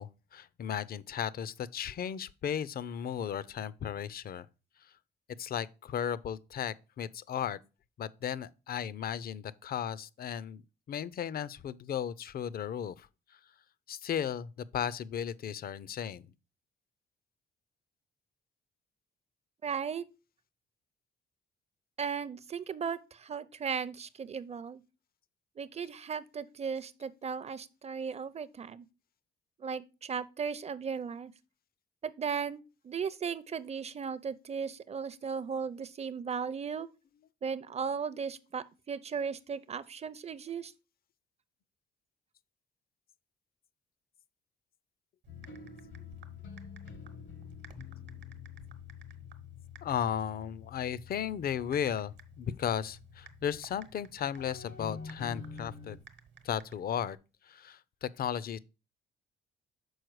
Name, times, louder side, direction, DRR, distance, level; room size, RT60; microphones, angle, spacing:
voice 1, 0.0-4.5 5.4-7.6 8.0-10.6 10.9-13.1 13.9-16.2 49.8-56.0 56.4-57.2 57.5-58.6, left 9 dB, 50° left, 0.5 m, -35 dB
voice 2, 19.6-20.0 22.0-24.8 25.6-28.8 29.6-31.3 32.0-36.9 37.4-40.7, right 6 dB, 30° right, 0.5 m, -36 dB
Typing, 45.2-57.2, right 6 dB, 60° right, 1.0 m, -57 dB
sound 1, 45.3-54.1 54.4-56.0, left 6 dB, 75° left, 1.0 m, -48 dB
6.3 x 4.4 x 4.7 m
cardioid pair, 90°, 20 cm